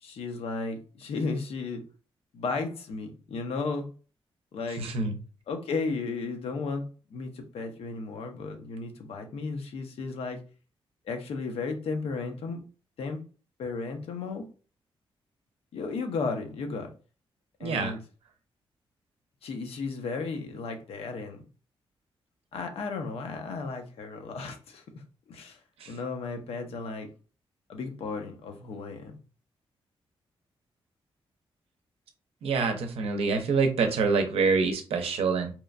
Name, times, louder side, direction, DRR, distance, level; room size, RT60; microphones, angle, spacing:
voice 1, 0.0-1.8 2.3-3.9 4.5-4.9 5.5-6.9 7.1-10.4 11.1-12.6 13.0-13.2 13.6-14.4 15.7-16.9 17.6-18.0 19.4-21.4 22.5-25.0 25.3-25.6 25.9-27.1 27.7-29.2, left 4 dB, 80° left, 5 dB, 0.6 m, -34 dB
voice 2, 4.8-5.1 17.6-17.9 25.8-25.9 32.4-35.5, right 4 dB, 80° right, 6 dB, 0.5 m, -26 dB
2.9 x 2.1 x 2.4 m, 0.36 s
cardioid pair, 100°, 10 cm